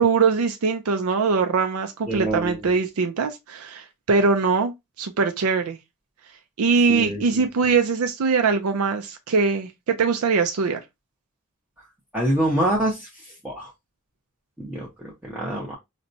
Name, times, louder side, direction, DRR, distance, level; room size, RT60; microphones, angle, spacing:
voice 1, 0.0-5.8 6.6-10.8, right 5 dB, 70° right, 0.4 m, -22 dB
voice 2, 2.1-2.6 6.9-7.2 12.1-13.1 13.4-13.7 14.6-14.9 15.2-15.7, right 1 dB, 5° right, 0.7 m, -25 dB
4.0 x 2.2 x 2.6 m
head